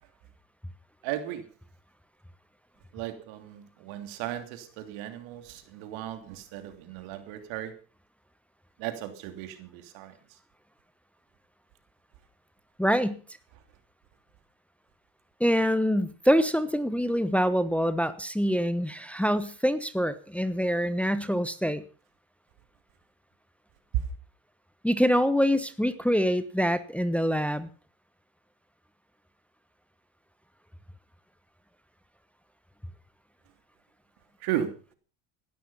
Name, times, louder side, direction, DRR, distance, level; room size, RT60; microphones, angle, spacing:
voice 1, 1.0-1.4 2.9-7.7 8.8-10.1 23.9-24.0 34.4-34.7, right 11 dB, 75° right, 3.1 m, -35 dB
voice 2, 12.8-13.2 15.4-21.8 24.8-27.7, equal, 5° left, 1.1 m, -25 dB
16.0 x 12.5 x 5.6 m
supercardioid pair, 100°, 48 cm